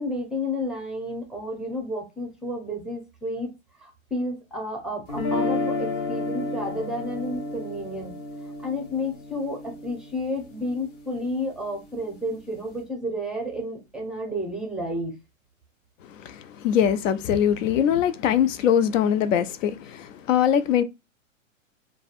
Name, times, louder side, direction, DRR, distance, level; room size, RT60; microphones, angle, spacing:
voice 1, 0.0-3.5 3.7-15.1, left 1 dB, ahead, 0.5 m, -31 dB
sound 1, 5.1-11.2, left 3 dB, 35° left, 1.0 m, -31 dB
voice 2, 16.1-20.8, left 9 dB, 70° left, 0.5 m, -22 dB
3.2 x 2.2 x 2.4 m
hypercardioid pair, 120°, 40 cm